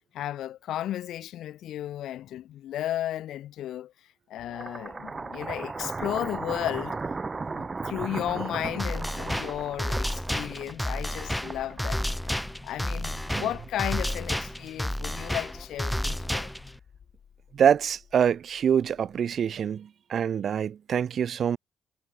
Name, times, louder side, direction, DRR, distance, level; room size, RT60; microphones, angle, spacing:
voice 1, 0.1-3.9 4.3-7.0 7.5-12.3 12.6-16.5, left 12 dB, 80° left, 1.6 m, -34 dB
sound 1, 4.4-12.7, right 3 dB, 25° right, 0.8 m, -36 dB
sound 2, 8.8-16.8, equal, 5° left, 0.4 m, -31 dB
sound 3, 16.4-19.7, left 7 dB, 55° left, 5.5 m, -55 dB
voice 2, 17.5-21.6, right 8 dB, 55° right, 0.3 m, -25 dB
cardioid pair, 90°, 0 cm